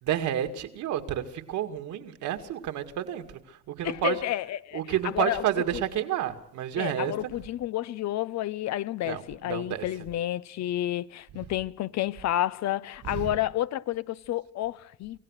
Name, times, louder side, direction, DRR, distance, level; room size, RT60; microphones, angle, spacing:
voice 1, 0.0-4.2 4.7-7.1 9.1-9.8 13.0-13.3, right 11 dB, 75° right, 2.3 m, -30 dB
voice 2, 3.8-5.4 6.8-15.2, left 13 dB, 65° left, 0.8 m, -30 dB
27.0 x 16.0 x 6.5 m
cardioid pair, 105°, 30 cm